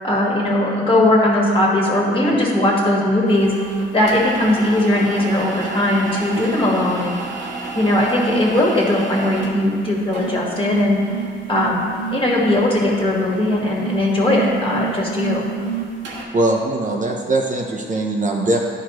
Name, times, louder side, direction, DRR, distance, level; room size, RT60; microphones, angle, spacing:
voice 1, 0.0-3.5 3.9-7.2 7.7-11.0 11.5-15.5, left 1 dB, 25° left, -3 dB, 1.7 m, -18 dB
sound 1, 3.3-16.2, right 4 dB, 75° right, 1.2 m, -30 dB
voice 2, 16.3-18.6, right 2 dB, 40° right, 0 dB, 0.8 m, -21 dB
11.0 x 4.7 x 3.0 m, 2.2 s
cardioid pair, 90°, 20 cm